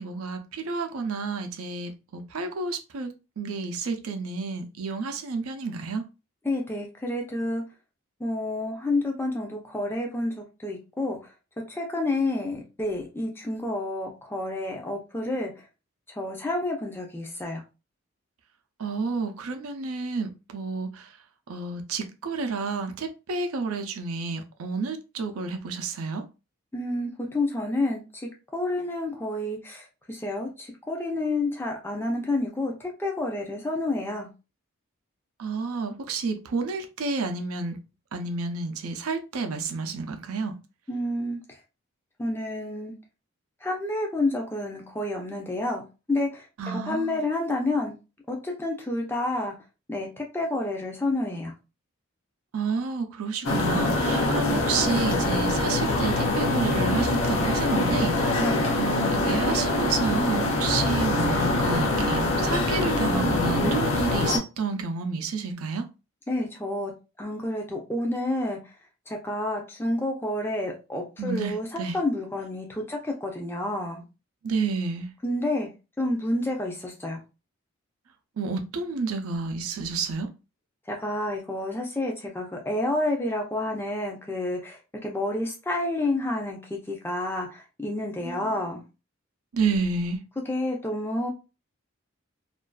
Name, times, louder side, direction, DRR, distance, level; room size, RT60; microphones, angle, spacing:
voice 1, 0.0-6.0 18.8-21.1 21.5-26.2 35.4-37.8 38.1-40.5 46.6-47.2 52.5-58.4 58.8-65.9 71.2-72.0 74.4-75.1 78.4-80.3 88.2-88.6 89.5-90.2, right 4 dB, 90° right, 0.5 m, -30 dB
voice 2, 6.4-7.6 8.2-11.2 11.7-15.5 16.2-17.6 26.7-28.0 28.5-34.3 40.9-41.4 42.2-42.9 43.6-45.8 46.1-47.9 48.3-49.5 49.9-51.5 58.4-58.6 66.3-66.9 67.2-68.6 69.1-74.0 75.2-75.7 76.0-77.2 80.9-88.8 90.5-91.3, left 2 dB, 10° left, 0.4 m, -29 dB
sound 1, 53.4-64.4, left 2 dB, 75° left, 0.5 m, -24 dB
2.5 x 2.3 x 2.2 m
head